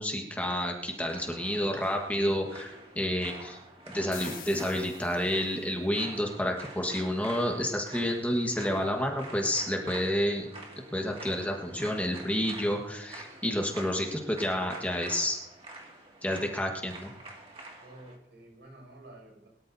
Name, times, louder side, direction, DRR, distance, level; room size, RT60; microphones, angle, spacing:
voice 1, 0.0-3.6 3.9-10.5 10.9-15.4 16.2-17.1, equal, 10° left, 1 dB, 1.4 m, -30 dB
sound 1, 1.1-18.2, right 2 dB, 35° right, 2.2 m, -48 dB
sound 2, 4.1-5.7, left 9 dB, 55° left, 1.5 m, -46 dB
voice 2, 17.8-19.5, right 1 dB, 90° right, 0 dB, 6.2 m, -50 dB
22.5 x 12.5 x 2.7 m, 0.89 s
head